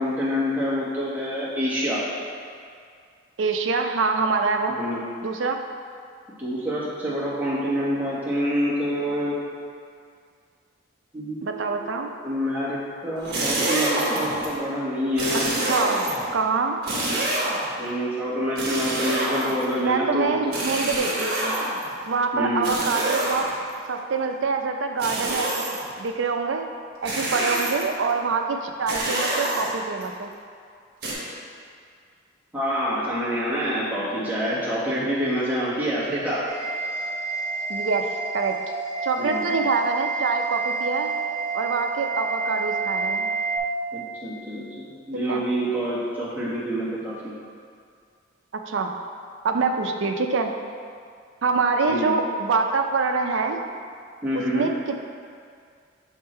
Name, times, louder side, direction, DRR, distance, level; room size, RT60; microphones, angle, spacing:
voice 1, 0.0-2.0 4.7-5.0 6.4-9.4 11.1-15.5 17.8-20.5 22.3-22.7 32.5-36.4 39.2-39.5 43.9-47.3 51.9-52.1 54.2-54.7, equal, 10° right, -10 dB, 1.4 m, -27 dB
voice 2, 3.4-4.8 5.2-5.6 11.4-12.1 15.7-16.0 16.3-16.8 19.8-21.6 22.1-23.5 23.8-25.6 26.0-26.7 27.0-30.3 37.7-38.6 39.0-41.1 41.5-43.3 45.3-45.4 48.5-48.9 49.4-50.5 51.4-53.6 54.3-54.7, right 4 dB, 75° right, 4 dB, 0.5 m, -25 dB
sound 1, 13.2-14.5 15.2-16.3 16.8-17.8 18.6-19.8 20.5-21.9 22.6-23.7 25.0-25.9 27.0-28.0 28.9-30.0 31.0-31.1, right 1 dB, 50° right, 1.4 m, -27 dB
sound 2, 36.5-43.6, right 4 dB, 30° right, 1.1 m, -29 dB
6.5 x 3.6 x 4.4 m, 2.2 s
head